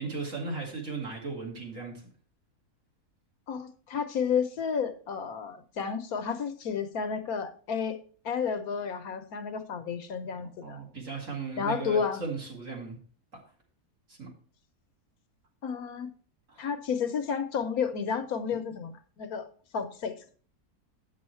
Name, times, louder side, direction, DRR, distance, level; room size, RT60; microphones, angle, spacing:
voice 1, 0.0-2.0 10.6-13.0 14.1-14.3 16.5-16.7, right 4 dB, 55° right, -1 dB, 2.7 m, -36 dB
voice 2, 3.5-8.0 8.2-10.8 11.6-12.2 15.6-16.1 16.6-19.5 19.7-20.1, left 6 dB, 70° left, 9 dB, 1.2 m, -31 dB
9.0 x 6.2 x 4.4 m, 0.43 s
omnidirectional pair, 1.7 m